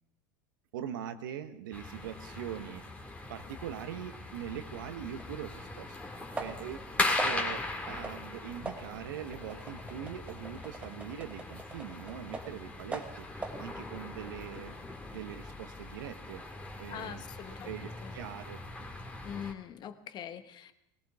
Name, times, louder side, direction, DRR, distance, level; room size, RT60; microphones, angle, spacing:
voice 1, 0.7-2.8 3.3-6.0 6.3-13.3 13.6-14.8 15.1-16.4 16.8-17.2 17.6-18.6, right 10 dB, 80° right, 9 dB, 1.2 m, -42 dB
sound 1, 1.7-19.5, left 2 dB, 10° left, 2.1 m, -39 dB
sound 2, 5.2-5.3 6.4-6.8 7.2-7.6 8.0-8.3 8.7-12.6 12.9-13.7, right 3 dB, 10° right, 1.2 m, -42 dB
voice 2, 16.9-18.1 19.2-20.7, left 9 dB, 40° left, 9 dB, 1.2 m, -43 dB
19.5 x 18.0 x 3.6 m, 0.81 s
supercardioid pair, 100°, 11 cm